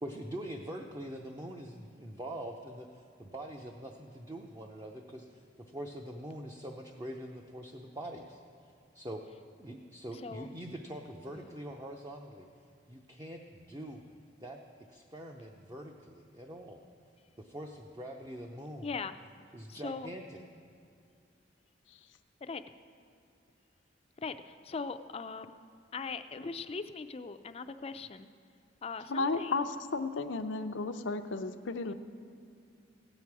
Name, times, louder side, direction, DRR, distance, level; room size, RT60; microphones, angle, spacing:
voice 1, 0.0-8.4 8.9-9.2 9.6-12.5 12.9-14.0 14.4-16.8 17.4-19.0 19.5-20.4, right 1 dB, 20° right, 2 dB, 0.6 m, -44 dB
voice 2, 10.1-10.5 18.8-19.2 19.7-20.1 22.4-22.6 24.2-25.5 25.9-28.3 28.8-29.7 31.9-32.0, left 4 dB, 30° left, 10 dB, 0.4 m, -40 dB
voice 3, 29.1-29.6 29.9-31.9, left 3 dB, 90° left, 9 dB, 0.6 m, -33 dB
16.5 x 8.9 x 4.7 m, 2.4 s
head